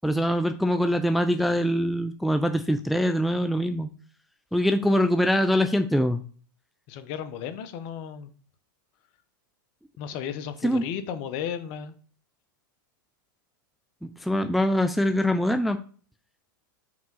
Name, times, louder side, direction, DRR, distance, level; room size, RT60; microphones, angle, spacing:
voice 1, 0.0-3.9 4.5-6.2 10.6-10.8 14.0-15.8, equal, ahead, 6 dB, 0.4 m, -23 dB
voice 2, 6.9-8.3 10.0-11.9, left 8 dB, 45° left, 10 dB, 0.9 m, -34 dB
4.8 x 3.6 x 5.5 m, 0.43 s
hypercardioid pair, 115°, 11 cm